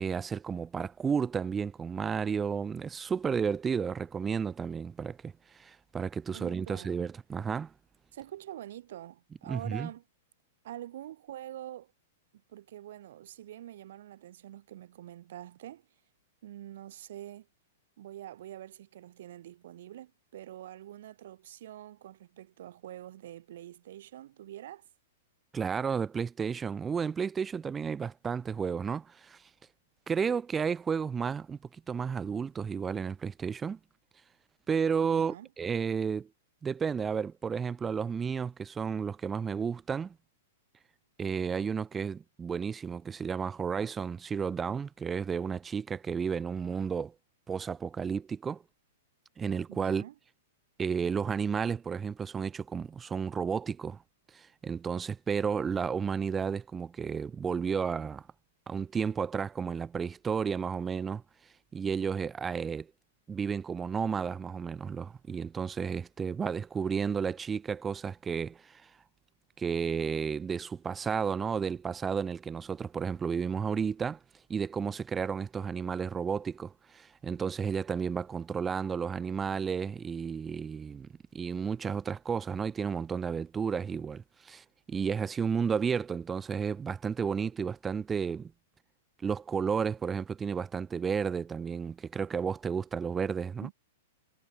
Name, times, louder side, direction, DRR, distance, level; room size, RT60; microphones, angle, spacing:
voice 1, 0.0-7.7 9.5-9.9 25.5-29.4 30.1-31.6 31.9-33.8 34.7-36.3 36.6-40.2 41.2-47.1 47.5-48.6 49.4-50.1 50.8-54.0 54.3-58.2 58.7-61.2 61.7-62.9 63.3-68.8 69.6-74.2 74.5-88.5 89.2-93.7, right 6 dB, 15° right, 2.0 m, -32 dB
voice 2, 6.3-7.1 8.1-10.0 10.6-11.9 12.5-15.8 16.4-17.5 18.0-24.9 35.0-35.5 49.7-50.1 93.6-93.7, right 12 dB, 65° right, 8.0 m, -45 dB
hypercardioid pair, 125°, 0 cm